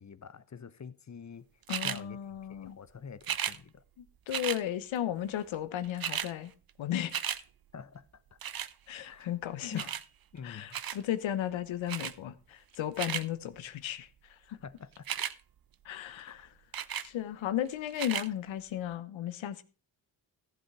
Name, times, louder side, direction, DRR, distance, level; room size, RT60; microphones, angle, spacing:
voice 1, 0.0-1.5 1.8-3.8 7.7-8.4 9.0-9.3 9.7-9.8 10.3-10.8 14.6-15.1 16.2-16.5, left 6 dB, 35° left, 1.0 m, -47 dB
voice 2, 1.7-2.8 4.0-6.5 6.8-7.2 8.9-9.9 10.4-14.6 15.8-16.4 17.0-19.6, left 11 dB, 80° left, 1.1 m, -35 dB
sound 1, 1.7-2.0 3.2-3.6 4.3-4.6 5.5-5.6 5.8-6.3 6.7-7.4 8.4-8.7 9.8-10.1 10.7-11.0 11.9-12.1 12.7-13.3 15.0-15.3 16.7-17.1 17.9-18.3 18.9-19.0, right 9 dB, 50° right, 0.8 m, -34 dB
14.5 x 7.6 x 4.8 m
supercardioid pair, 50°, 46 cm